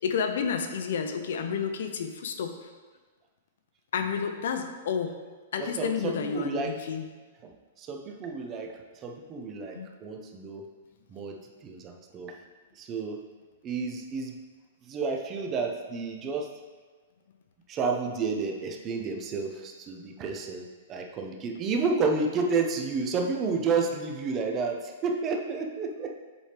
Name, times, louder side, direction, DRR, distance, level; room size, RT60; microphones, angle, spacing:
voice 1, 0.0-2.5 3.9-5.1 5.5-7.0 9.7-9.9, left 6 dB, 70° left, 6 dB, 0.7 m, -30 dB
voice 2, 5.6-6.8 7.4-7.5 7.8-8.7 9.0-10.7 11.1-12.3 12.8-13.2 13.6-14.3 14.9-16.5 17.7-26.2, right 4 dB, 20° right, 3 dB, 0.6 m, -31 dB
8.0 x 4.3 x 3.4 m, 1.4 s
hypercardioid pair, 160°, 0 cm